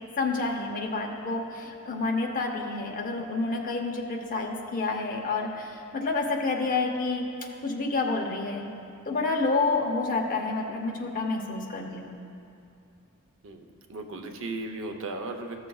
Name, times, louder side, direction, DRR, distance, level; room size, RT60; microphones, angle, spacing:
voice 1, 0.2-7.2 7.6-8.7 9.1-12.2, left 3 dB, 40° left, 1 dB, 0.8 m, -29 dB
voice 2, 13.4-15.7, right 2 dB, 65° right, 4 dB, 0.7 m, -36 dB
15.5 x 6.4 x 2.3 m, 2.6 s
head